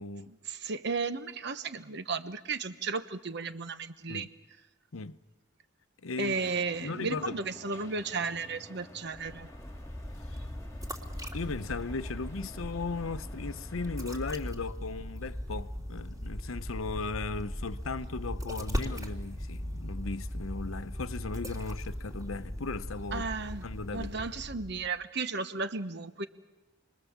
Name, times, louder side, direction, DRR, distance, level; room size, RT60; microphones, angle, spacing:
voice 1, 0.3-4.3 6.2-9.5 23.1-23.6 23.9-26.3, right 4 dB, 55° right, 1.1 m, -34 dB
voice 2, 6.0-7.4 10.2-10.5 11.3-23.3 23.6-24.3, left 3 dB, 90° left, 0.8 m, -37 dB
sound 1, 6.2-14.2, left 1 dB, 15° left, 2.0 m, -52 dB
sound 2, 9.1-25.0, equal, 20° right, 3.2 m, -38 dB
29.5 x 22.0 x 7.3 m
head